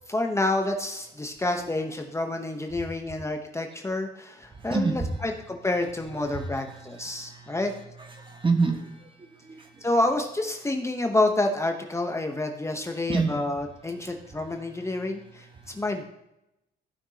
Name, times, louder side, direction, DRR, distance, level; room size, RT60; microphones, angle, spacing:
voice 1, 0.1-7.7 9.8-16.0, left 2 dB, 15° left, 3 dB, 0.9 m, -28 dB
voice 2, 4.6-5.1 6.2-7.6 8.0-9.3 13.1-13.4 14.3-14.7 15.6-15.7, right 4 dB, 30° right, 4 dB, 1.4 m, -29 dB
15.0 x 5.9 x 2.8 m, 0.88 s
cardioid pair, 95°, 17 cm